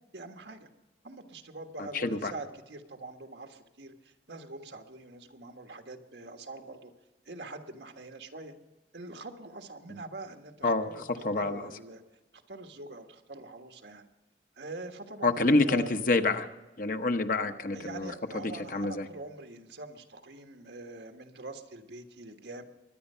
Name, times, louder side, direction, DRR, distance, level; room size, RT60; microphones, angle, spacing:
voice 1, 0.1-0.7 1.0-6.9 7.2-8.5 8.9-12.0 12.5-14.1 14.6-15.9 17.7-22.6, right 2 dB, 80° right, 5 dB, 1.5 m, -44 dB
voice 2, 1.8-2.3 10.6-10.9 11.2-11.6 15.2-16.5 16.8-18.1 18.7-19.1, left 2 dB, 50° left, 7 dB, 0.9 m, -27 dB
23.0 x 10.0 x 5.6 m, 1.1 s
head